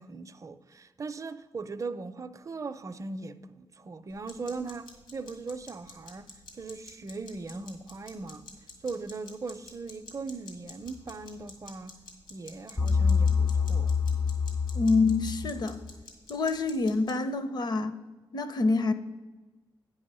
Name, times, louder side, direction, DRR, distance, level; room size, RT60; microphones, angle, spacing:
voice 1, 0.0-8.5 8.8-12.0 12.3-13.9, right 3 dB, 40° right, 0.5 m, -39 dB
sound 1, 4.1-17.1, left 3 dB, 85° left, 2.0 m, -50 dB
sound 2, 12.8-15.9, left 5 dB, 15° left, 0.3 m, -26 dB
voice 2, 14.7-15.8 16.3-18.0 18.3-18.9, left 3 dB, 55° left, 0.7 m, -26 dB
9.3 x 5.5 x 6.7 m
cardioid pair, 90°, 9 cm